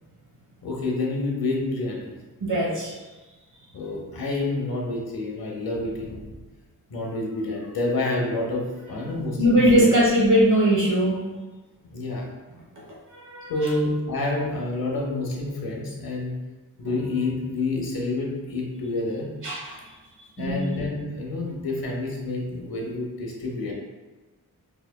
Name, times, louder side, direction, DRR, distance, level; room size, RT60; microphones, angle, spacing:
voice 1, 0.6-2.1 3.7-6.3 6.9-9.9 11.9-12.2 13.5-16.4 16.8-19.3 20.4-23.7, left 2 dB, 90° left, -1 dB, 0.9 m, -28 dB
voice 2, 2.4-2.9 9.0-9.1 9.4-11.2 13.1-13.5 19.4-19.8 20.4-20.7, equal, 60° right, -3 dB, 1.1 m, -20 dB
4.8 x 2.8 x 2.2 m, 1.2 s
wide cardioid pair, 85°, 35 cm